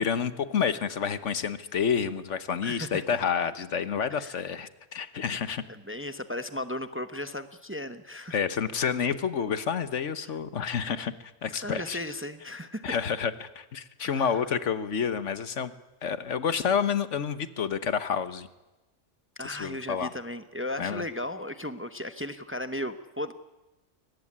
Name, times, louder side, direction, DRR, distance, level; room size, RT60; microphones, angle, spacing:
voice 1, 0.0-5.6 8.3-11.1 11.4-12.0 12.8-15.7 16.0-18.5 19.4-20.1 20.8-21.0, left 7 dB, 70° left, 13 dB, 1.4 m, -29 dB
voice 2, 2.6-3.2 4.1-4.4 5.7-8.4 11.6-12.9 14.0-14.5 19.4-23.3, left 1 dB, 10° right, 10 dB, 0.9 m, -36 dB
23.0 x 19.0 x 9.9 m, 1.0 s
omnidirectional pair, 1.3 m